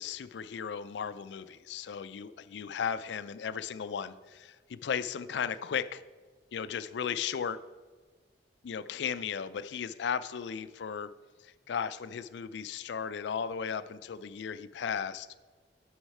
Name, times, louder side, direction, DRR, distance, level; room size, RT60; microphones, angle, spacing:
voice 1, 0.0-6.0 6.5-7.6 8.6-11.1 11.4-15.3, left 7 dB, 70° left, 14 dB, 0.4 m, -36 dB
8.0 x 6.4 x 4.2 m, 1.4 s
head